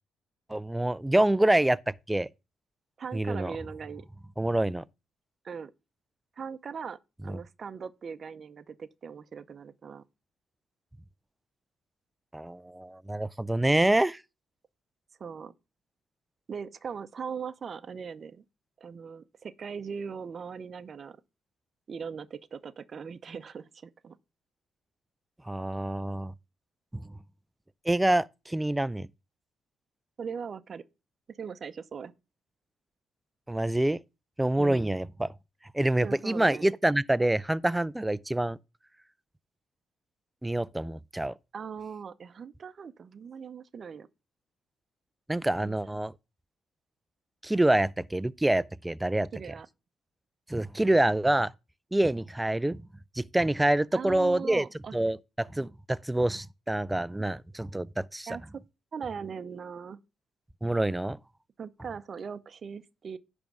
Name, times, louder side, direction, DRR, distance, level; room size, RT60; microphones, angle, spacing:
voice 1, 0.5-2.3 3.1-3.5 4.4-4.8 7.3-7.4 12.3-14.2 25.4-26.3 26.9-27.1 27.8-29.1 33.5-34.0 34.4-35.3 35.7-38.6 40.4-41.3 45.3-46.1 47.4-49.3 50.5-51.5 51.9-52.8 53.1-54.7 54.9-58.3 60.6-61.2, right 1 dB, 10° right, 0.4 m, -26 dB
voice 2, 3.0-4.1 5.4-5.7 6.4-7.0 7.2-10.0 15.2-15.5 16.5-18.4 18.8-21.2 21.9-24.2 30.2-30.8 31.3-32.1 34.6-34.9 36.0-36.6 41.5-44.1 45.6-45.8 49.3-49.7 53.9-54.9 58.3-58.6 58.9-60.0 61.6-63.2, right 6 dB, 45° right, 0.6 m, -40 dB
10.5 x 3.5 x 6.2 m
cardioid pair, 90°, 0 cm